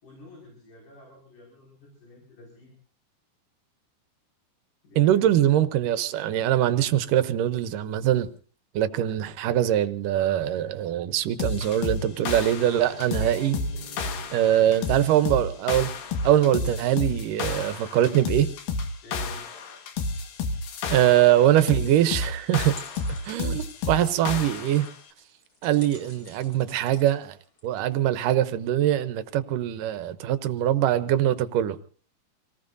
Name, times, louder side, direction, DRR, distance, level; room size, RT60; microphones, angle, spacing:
voice 1, 0.0-2.8 4.8-5.5 14.4-14.9 19.0-19.4, left 2 dB, 60° left, 7.2 m, -48 dB
voice 2, 5.0-8.3 8.7-13.6 14.3-15.9 16.2-18.5 20.9-22.8 23.2-24.9 25.6-27.4 27.6-31.8, right 12 dB, 75° right, 2.3 m, -23 dB
sound 1, 11.4-25.0, left 3 dB, 80° left, 3.3 m, -31 dB
sound 2, 12.5-17.1, right 1 dB, 10° left, 3.7 m, -48 dB
sound 3, 22.5-28.1, left 2 dB, 30° left, 3.3 m, -51 dB
27.0 x 19.0 x 2.7 m
omnidirectional pair, 4.1 m